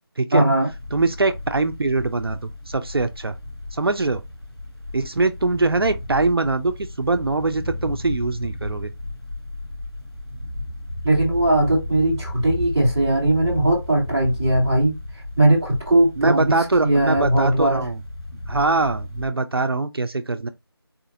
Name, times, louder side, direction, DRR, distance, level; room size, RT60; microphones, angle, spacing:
voice 1, 0.3-0.7 11.0-17.9, right 1 dB, 5° right, 1.0 m, -19 dB
sound 1, 0.7-19.3, left 1 dB, 70° left, 2.1 m, -34 dB
voice 2, 0.9-3.3 3.7-4.2 4.9-8.9 16.2-18.0 18.5-20.5, right 3 dB, 65° right, 0.4 m, -22 dB
4.1 x 2.5 x 2.6 m
figure-of-eight pair, 170°, 13 cm